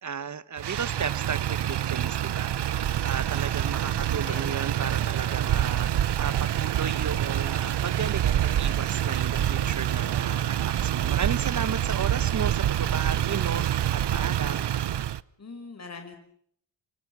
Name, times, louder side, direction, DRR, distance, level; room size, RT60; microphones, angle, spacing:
voice 1, 0.0-14.7, right 6 dB, 40° right, 15 dB, 1.4 m, -34 dB
Motor vehicle (road), 0.6-15.2, right 11 dB, 60° right, 0.9 m, -26 dB
voice 2, 3.8-4.7 15.4-16.2, left 4 dB, 35° left, 6 dB, 5.5 m, -43 dB
sound 1, 7.3-13.2, left 5 dB, 60° left, 7.7 m, -55 dB
29.0 x 24.0 x 6.3 m, 0.66 s
wide cardioid pair, 135°, 46 cm